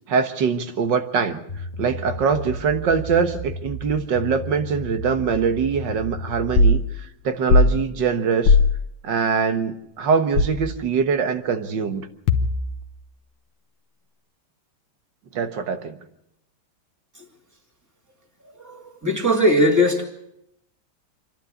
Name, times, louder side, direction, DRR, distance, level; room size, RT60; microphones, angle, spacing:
voice 1, 0.1-1.4 1.8-8.6 9.0-12.1 15.3-16.0, right 6 dB, 60° right, 8 dB, 2.0 m, -23 dB
sound 1, 1.5-6.7, right 1 dB, 25° left, 1.2 m, -34 dB
sound 2, 6.6-6.8 7.5-7.8 8.5-8.7 10.4-10.7 12.3-12.8, left 3 dB, 85° left, 1.9 m, -16 dB
voice 2, 18.6-20.1, equal, 10° right, 2 dB, 2.5 m, -19 dB
28.0 x 11.5 x 8.6 m, 0.80 s
omnidirectional pair, 2.2 m